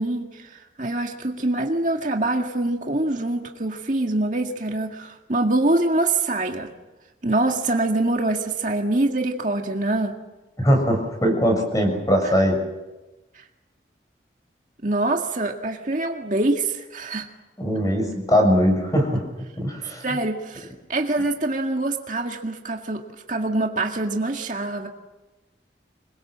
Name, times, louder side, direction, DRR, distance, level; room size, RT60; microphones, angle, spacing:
voice 1, 0.0-6.7 7.2-10.2 12.2-12.3 13.4-13.5 14.8-17.3 20.0-23.0 23.3-24.9, right 2 dB, 45° right, 2 dB, 2.0 m, -24 dB
voice 2, 10.6-12.6 17.6-19.2 19.6-20.0, equal, 20° left, 3 dB, 6.4 m, -20 dB
26.5 x 22.0 x 7.6 m, 1.1 s
head